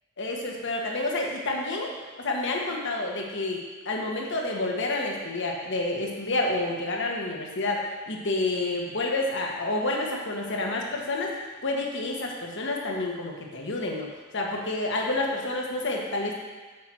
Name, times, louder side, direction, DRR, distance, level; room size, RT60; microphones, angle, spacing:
voice 1, 0.2-3.6 3.8-14.1 14.3-16.3, left 2 dB, 60° left, 0 dB, 1.5 m, -29 dB
8.3 x 5.8 x 6.3 m, 1.4 s
head